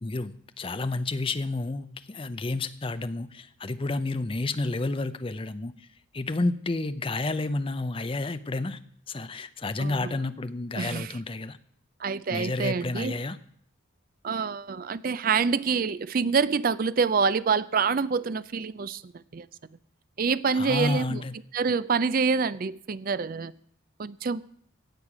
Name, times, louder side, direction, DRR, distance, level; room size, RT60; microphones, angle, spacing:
voice 1, 0.0-5.9 6.1-8.8 9.1-11.6 12.3-13.4 20.5-21.3, left 2 dB, 25° left, 12 dB, 0.5 m, -30 dB
voice 2, 9.8-10.1 10.8-11.1 12.0-13.1 14.2-19.5 20.2-21.2 21.5-23.5 24.0-24.4, right 5 dB, 40° right, 16 dB, 0.4 m, -26 dB
17.0 x 6.6 x 6.0 m, 0.66 s
head